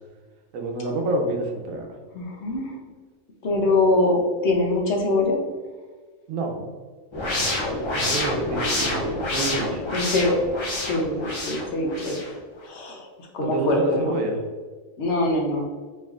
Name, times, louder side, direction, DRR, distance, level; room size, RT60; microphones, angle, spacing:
voice 1, 0.5-1.9 6.3-6.7 7.2-7.6 7.9-9.8 13.4-14.4, right 2 dB, 75° right, 2 dB, 1.1 m, -28 dB
voice 2, 2.1-2.8 3.4-5.4 8.5-9.1 9.9-10.4 10.8-13.1 13.3-14.2 15.0-15.7, left 2 dB, 60° left, 0 dB, 0.9 m, -24 dB
sound 1, 7.1-12.3, left 2 dB, 40° left, 0.4 m, -28 dB
4.3 x 3.2 x 2.4 m, 1.4 s
omnidirectional pair, 1.4 m